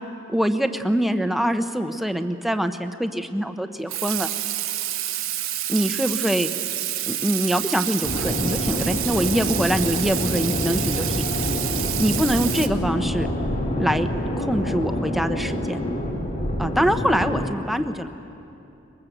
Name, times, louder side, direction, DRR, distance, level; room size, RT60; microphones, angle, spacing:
voice 1, 0.3-4.3 5.7-6.5 7.1-11.2 12.0-13.3 13.8-14.1 14.4-15.8 16.6-18.1, equal, ahead, 7 dB, 0.9 m, -24 dB
Water tap faucet / Sink (filling or washing), 3.9-12.7, right 13 dB, 70° right, 1.2 m, -28 dB
sound 1, 8.0-17.4, equal, 40° left, 3.9 m, -27 dB
24.0 x 21.5 x 7.9 m, 2.8 s
head